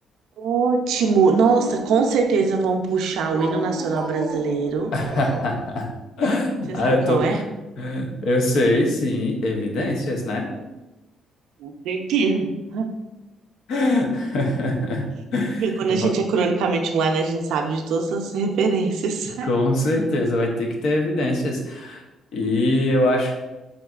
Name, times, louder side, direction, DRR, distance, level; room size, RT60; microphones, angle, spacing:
voice 1, 0.4-4.9 6.7-7.4 11.6-12.9 15.6-19.5, right 5 dB, 85° right, 4 dB, 0.5 m, -22 dB
Dog, 0.9-2.4 3.3-5.6, equal, 30° right, 0.6 m, -33 dB
voice 2, 4.9-5.9 6.2-7.4 7.8-10.5 13.7-16.1 19.4-22.0 22.3-23.4, left 1 dB, 65° left, 1 dB, 0.7 m, -23 dB
3.9 x 3.6 x 2.3 m, 1.1 s
cardioid pair, 175°, 0 cm